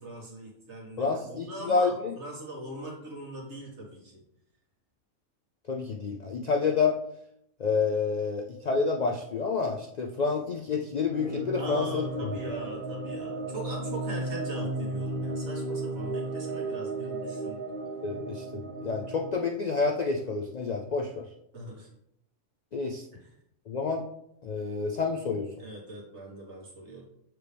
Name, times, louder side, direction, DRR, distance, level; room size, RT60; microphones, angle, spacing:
voice 1, 0.0-4.2 11.5-17.6 21.5-21.9 23.1-23.4 25.6-27.1, right 1 dB, 65° right, -3 dB, 2.1 m, -41 dB
voice 2, 1.0-2.1 5.7-7.0 7.6-12.0 18.0-21.2 22.7-23.0 23.7-24.1 24.4-25.5, left 4 dB, 55° left, 2 dB, 0.4 m, -28 dB
sound 1, 11.1-19.3, right 2 dB, 45° right, 0.8 m, -34 dB
6.7 x 4.5 x 3.4 m, 0.76 s
omnidirectional pair, 1.3 m